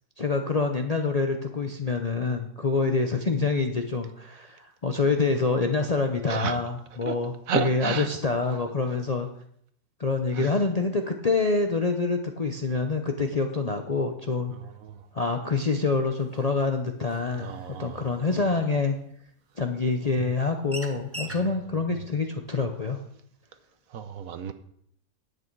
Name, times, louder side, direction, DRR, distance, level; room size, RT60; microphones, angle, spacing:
voice 1, 0.2-9.3 10.0-14.5 15.1-17.5 17.8-19.0 19.6-23.0, left 3 dB, 40° left, 0.6 m, -26 dB
voice 2, 7.5-8.1 10.4-10.5 14.8-14.9 17.4-18.1 23.9-24.5, right 7 dB, 70° right, 1.2 m, -31 dB
sound 1, 16.5-16.6 17.1-17.8 18.2-18.3 19.1-19.2 19.8-19.9 20.2-20.4 20.7-21.5, right 1 dB, 10° right, 1.0 m, -40 dB
10.5 x 8.8 x 4.6 m
omnidirectional pair, 1.6 m